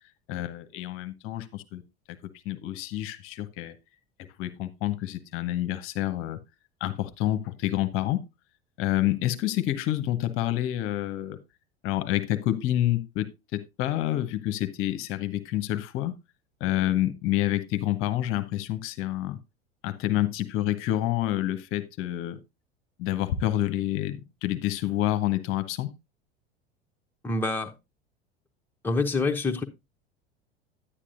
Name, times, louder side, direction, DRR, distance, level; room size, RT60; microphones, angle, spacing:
voice 1, 0.3-1.8 2.4-3.7 4.4-6.4 6.8-8.2 8.8-11.4 11.8-16.1 16.6-19.4 19.8-22.4 23.0-25.9, left 14 dB, 40° left, 1.0 m, -28 dB
voice 2, 27.2-27.7 28.8-29.6, left 3 dB, 5° left, 0.9 m, -26 dB
10.0 x 9.9 x 2.6 m
figure-of-eight pair, 80°, 32 cm